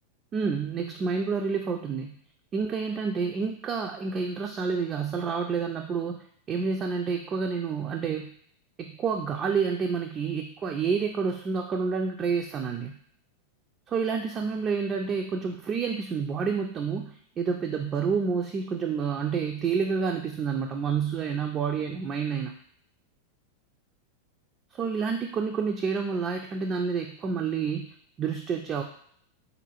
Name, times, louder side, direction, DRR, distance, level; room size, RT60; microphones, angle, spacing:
voice 1, 0.3-2.1 2.5-8.3 8.8-12.9 13.9-22.5 24.7-27.9 28.2-28.8, right 5 dB, 25° right, 2 dB, 0.3 m, -29 dB
3.9 x 2.7 x 2.8 m, 0.63 s
figure-of-eight pair, 90°, 0 cm